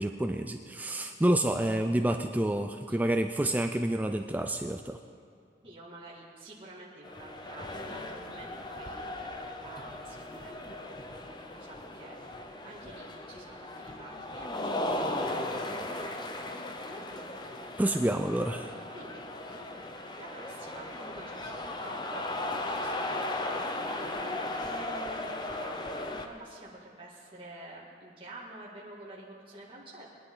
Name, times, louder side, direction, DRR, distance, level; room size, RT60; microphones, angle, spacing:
voice 1, 0.0-5.0 17.8-18.8, right 1 dB, 10° right, 6 dB, 0.4 m, -28 dB
voice 2, 5.6-12.2 12.5-15.3 18.9-19.2 19.5-19.8 20.2-22.3 22.6-23.1 23.4-24.3 24.6-30.1, right 2 dB, 30° right, -6 dB, 2.2 m, -49 dB
sound 1, 7.0-26.3, left 1 dB, 25° left, 0.8 m, -37 dB
21.5 x 10.5 x 3.9 m, 2.4 s
head